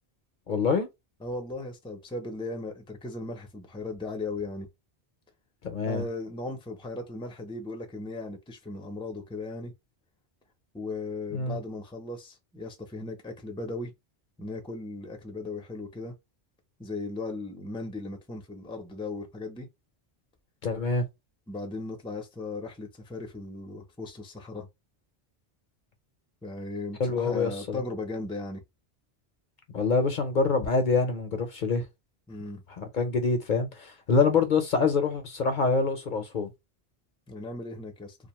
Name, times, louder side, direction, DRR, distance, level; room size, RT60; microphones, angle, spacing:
voice 1, 0.5-0.9 5.6-6.0 11.3-11.6 20.6-21.0 27.0-27.8 29.7-31.9 32.8-36.5, left 4 dB, 55° left, 0.7 m, -26 dB
voice 2, 1.2-4.7 5.8-9.7 10.7-13.9 14.4-16.1 16.8-19.7 21.5-24.7 26.4-28.6 32.3-32.6 37.3-38.2, left 2 dB, 5° left, 0.5 m, -37 dB
2.5 x 2.3 x 2.9 m
omnidirectional pair, 1.0 m